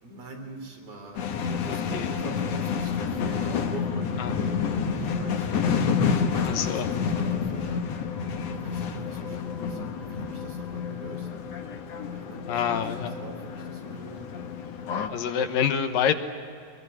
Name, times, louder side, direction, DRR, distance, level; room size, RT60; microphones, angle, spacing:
voice 1, 0.0-5.8 6.3-7.8 8.5-11.3 12.1-14.3, right 3 dB, 85° right, 2 dB, 5.7 m, -43 dB
sound 1, 1.1-15.1, left 6 dB, 55° left, 2.1 m, -29 dB
voice 2, 6.5-6.9 12.5-13.2 15.1-16.1, left 8 dB, 75° left, 7 dB, 2.9 m, -26 dB
23.5 x 21.0 x 9.8 m, 2.5 s
omnidirectional pair, 4.1 m